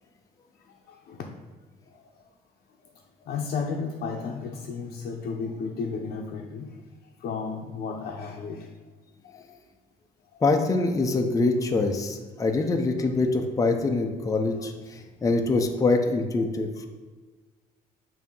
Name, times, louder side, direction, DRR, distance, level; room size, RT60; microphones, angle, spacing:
voice 1, 0.9-1.2 1.9-2.2 3.2-6.7 7.2-8.7 9.2-9.6 14.6-14.7, left 5 dB, 60° left, -1 dB, 0.7 m, -33 dB
voice 2, 10.4-16.7, left 3 dB, 20° left, 4 dB, 0.6 m, -24 dB
7.2 x 2.8 x 5.4 m, 1.4 s
cardioid pair, 110°, 17 cm